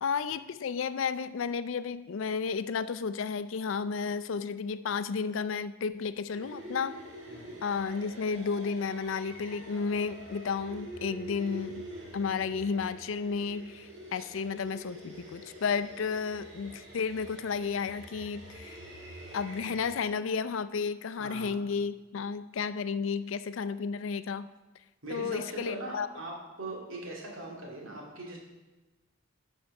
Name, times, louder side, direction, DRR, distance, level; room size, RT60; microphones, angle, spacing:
voice 1, 0.0-7.0 7.6-18.8 19.3-24.5 25.1-26.1, left 5 dB, 75° left, 14 dB, 0.4 m, -32 dB
sound 1, 6.3-20.0, right 1 dB, 65° right, 2.1 m, -46 dB
voice 2, 21.1-21.6 25.0-28.4, right 2 dB, 80° right, -2 dB, 2.4 m, -41 dB
11.5 x 5.4 x 4.8 m, 1.1 s
head